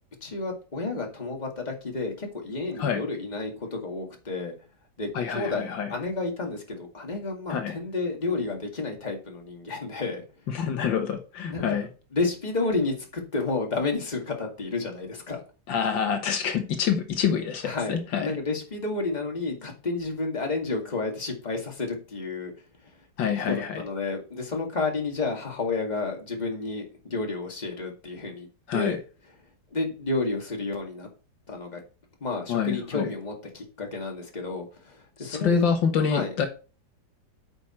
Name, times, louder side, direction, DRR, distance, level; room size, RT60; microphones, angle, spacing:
voice 1, 0.2-4.5 5.0-10.2 11.5-11.8 12.1-15.4 17.6-22.5 23.5-28.5 28.7-29.0 29.7-31.1 31.5-31.8 32.2-35.7 36.1-36.3, left 3 dB, 20° left, 2.1 m, -31 dB
voice 2, 5.2-5.9 7.5-7.7 10.5-11.9 15.7-18.3 23.2-23.8 28.7-29.0 32.5-33.1 35.2-36.5, left 7 dB, 80° left, 1.9 m, -26 dB
8.6 x 6.1 x 4.4 m
omnidirectional pair, 2.0 m